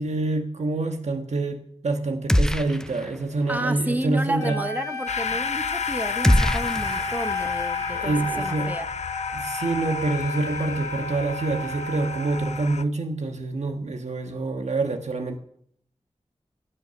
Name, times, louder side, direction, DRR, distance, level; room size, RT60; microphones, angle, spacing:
voice 1, 0.0-4.6 7.9-8.7 9.3-15.4, right 2 dB, 85° right, 5 dB, 1.3 m, -26 dB
sound 1, 2.3-3.2 3.5-3.6 6.2-7.5, left 1 dB, 5° left, 0.4 m, -23 dB
voice 2, 3.5-8.9, right 1 dB, 15° right, 9 dB, 0.9 m, -31 dB
Wind instrument woodwind instrument, 4.4-12.6, left 2 dB, 35° left, 2.0 m, -33 dB
sound 2, 5.1-12.8, left 6 dB, 90° left, 0.5 m, -32 dB
16.5 x 5.6 x 6.8 m, 0.68 s
wide cardioid pair, 80°, 11 cm